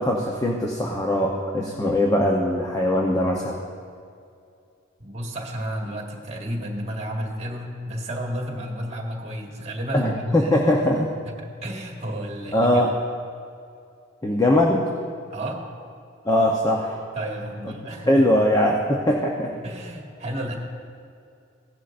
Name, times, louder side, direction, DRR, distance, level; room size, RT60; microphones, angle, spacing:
voice 1, 0.0-3.6 9.9-11.1 12.5-12.9 14.2-14.8 16.3-17.0 18.1-19.5, left 1 dB, 20° left, -1 dB, 0.8 m, -21 dB
voice 2, 5.0-10.5 11.4-12.8 15.3-15.6 17.1-18.3 19.6-20.6, equal, 35° right, 0 dB, 1.7 m, -31 dB
16.5 x 11.0 x 2.6 m, 2.4 s
head